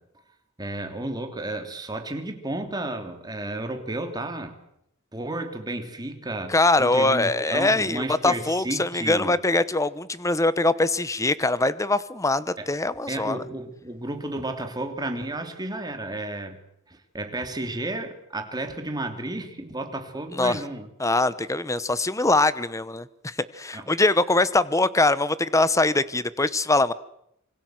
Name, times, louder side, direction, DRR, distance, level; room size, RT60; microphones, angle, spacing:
voice 1, 0.6-4.5 5.1-9.3 12.6-12.7 13.1-16.6 16.9-20.9 23.7-23.9, right 1 dB, 20° right, 6 dB, 3.0 m, -32 dB
voice 2, 6.5-13.4 20.3-20.6 21.0-26.9, left 2 dB, 15° left, 16 dB, 0.9 m, -23 dB
26.5 x 24.0 x 7.7 m, 0.75 s
head